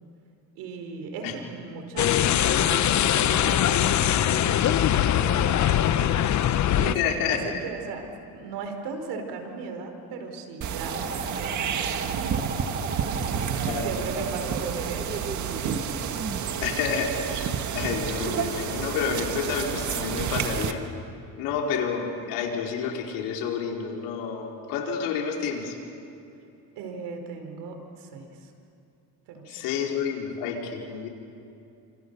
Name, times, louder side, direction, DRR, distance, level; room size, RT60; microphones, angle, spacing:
voice 1, 0.5-12.4 12.8-13.2 13.6-15.8 26.7-28.5 29.3-29.5, right 4 dB, 80° right, 4 dB, 4.8 m, -38 dB
sound 1, 2.0-6.9, left 11 dB, 45° left, 1.0 m, -22 dB
voice 2, 6.8-7.5 13.7-13.9 16.6-20.8 21.4-25.8 29.5-31.1, left 6 dB, 90° left, 0 dB, 4.6 m, -29 dB
sound 2, 10.6-20.7, right 7 dB, 45° right, 1.8 m, -30 dB
sound 3, 10.9-16.4, right 3 dB, 20° right, 1.3 m, -37 dB
29.5 x 27.0 x 6.9 m, 2.7 s
cardioid pair, 120°, 39 cm